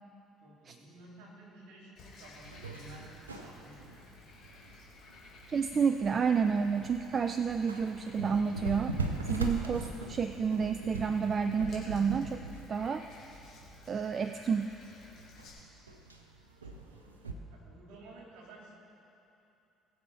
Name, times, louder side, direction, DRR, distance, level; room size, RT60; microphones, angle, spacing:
voice 1, 0.4-4.1 16.6-18.7, right 2 dB, 65° right, -3 dB, 3.1 m, -54 dB
Frog, 2.0-15.5, left 3 dB, 55° left, 2.9 m, -55 dB
sound 1, 2.4-17.3, right 3 dB, 90° right, 0.7 m, -41 dB
voice 2, 5.5-9.0 9.3-13.1 13.9-14.7, right 6 dB, 40° right, 9 dB, 0.4 m, -30 dB
20.0 x 7.2 x 4.3 m, 2.8 s
figure-of-eight pair, 55°, 0 cm